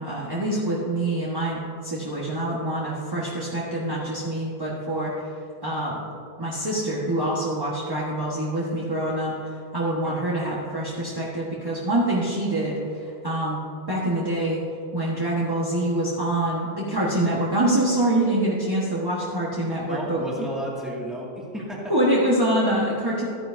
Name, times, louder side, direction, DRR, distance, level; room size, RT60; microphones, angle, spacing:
voice 1, 0.0-5.1 5.6-6.0 6.4-13.6 13.9-14.6 14.9-20.2 21.9-23.2, right 1 dB, 20° right, -7 dB, 1.3 m, -25 dB
voice 2, 19.9-21.9, equal, ahead, -5 dB, 1.9 m, -33 dB
13.5 x 10.0 x 2.6 m, 2.6 s
omnidirectional pair, 1.1 m